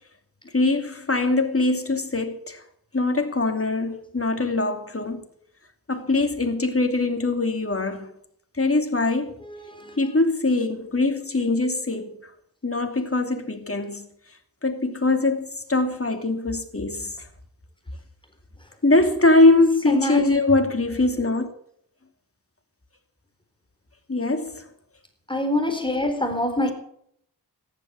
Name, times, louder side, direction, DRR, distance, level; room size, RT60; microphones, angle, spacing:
voice 1, 0.5-2.6 2.9-5.3 5.9-8.1 8.6-9.4 10.0-12.3 12.6-14.1 14.6-17.3 18.8-21.5 24.1-24.6, left 2 dB, 35° left, 2.8 m, -22 dB
voice 2, 9.5-10.0 19.9-20.2 25.3-26.7, left 1 dB, 10° left, 4.1 m, -24 dB
14.0 x 11.5 x 7.6 m
wide cardioid pair, 60°, 41 cm